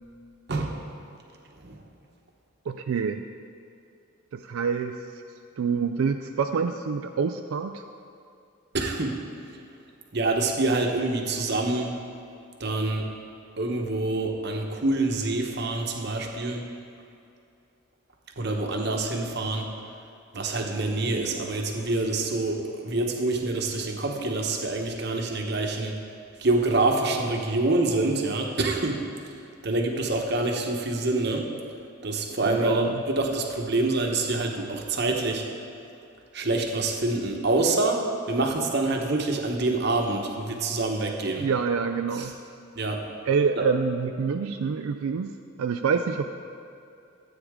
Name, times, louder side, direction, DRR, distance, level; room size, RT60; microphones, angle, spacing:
voice 1, 2.7-3.2 4.3-5.0 5.6-7.8 32.5-33.0 41.4-42.3 43.3-46.3, right 5 dB, 90° right, 7 dB, 0.4 m, -27 dB
voice 2, 8.7-9.1 10.1-11.9 12.6-13.0 13.6-16.6 18.4-19.7 20.3-25.9 26.4-29.0 29.6-31.4 32.0-35.4 36.3-38.0 38.3-41.5 42.8-43.0 43.6-43.7, right 2 dB, 55° right, 2 dB, 1.0 m, -26 dB
13.0 x 8.4 x 3.6 m, 2.6 s
head